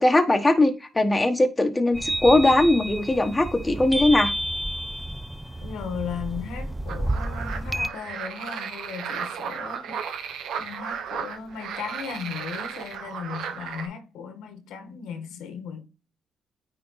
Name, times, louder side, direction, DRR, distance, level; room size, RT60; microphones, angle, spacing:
voice 1, 0.0-4.3, left 2 dB, 15° left, 1.2 m, -20 dB
sound 1, 1.9-7.9, right 1 dB, 10° right, 0.5 m, -30 dB
voice 2, 5.6-9.9 10.6-15.8, left 6 dB, 90° left, 1.5 m, -36 dB
sound 2, 6.9-13.9, right 7 dB, 80° right, 1.2 m, -35 dB
9.3 x 3.8 x 4.0 m
cardioid pair, 90°, 0 cm